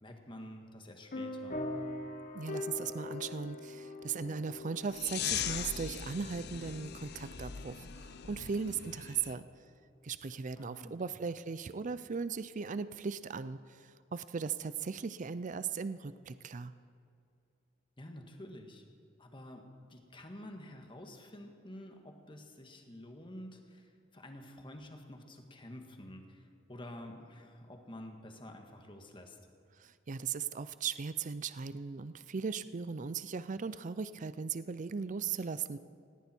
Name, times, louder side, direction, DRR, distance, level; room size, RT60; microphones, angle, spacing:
voice 1, 0.0-1.6 10.6-11.2 18.0-18.8 19.2-29.4, left 1 dB, 25° left, 4 dB, 1.7 m, -49 dB
sound 1, 1.1-9.2, left 2 dB, 45° left, 1.2 m, -43 dB
voice 2, 2.3-9.4 10.0-16.7 29.8-35.8, right 5 dB, 40° right, 14 dB, 0.5 m, -38 dB
sound 2, 4.9-9.3, left 9 dB, 60° left, 0.8 m, -40 dB
18.0 x 17.5 x 4.5 m, 2.5 s
head